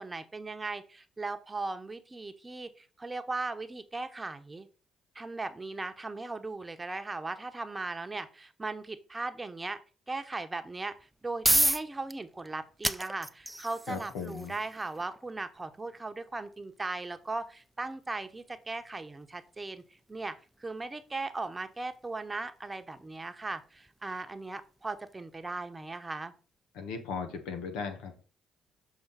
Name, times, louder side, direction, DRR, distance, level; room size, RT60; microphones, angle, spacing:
voice 1, 0.0-4.7 5.1-9.8 10.1-19.8 20.1-26.3, right 3 dB, 20° right, 8 dB, 1.0 m, -38 dB
sound 1, 10.9-25.8, right 1 dB, 5° right, 0.5 m, -36 dB
voice 2, 13.9-14.5 26.7-28.2, left 5 dB, 85° left, 6 dB, 1.3 m, -37 dB
7.1 x 4.4 x 4.1 m, 0.38 s
supercardioid pair, 75°, 0 cm